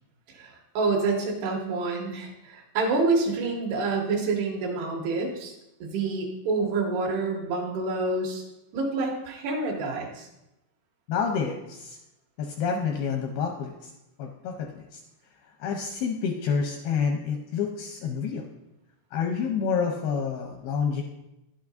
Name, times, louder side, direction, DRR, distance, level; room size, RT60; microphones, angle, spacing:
voice 1, 0.3-5.5 5.8-8.4 8.7-10.3, right 3 dB, 75° right, -1 dB, 3.2 m, -27 dB
voice 2, 11.1-12.0 12.4-13.9 14.2-15.0 15.6-18.5 19.1-21.0, left 6 dB, 85° left, 2 dB, 2.3 m, -28 dB
11.5 x 8.3 x 2.6 m, 0.90 s
omnidirectional pair, 5.1 m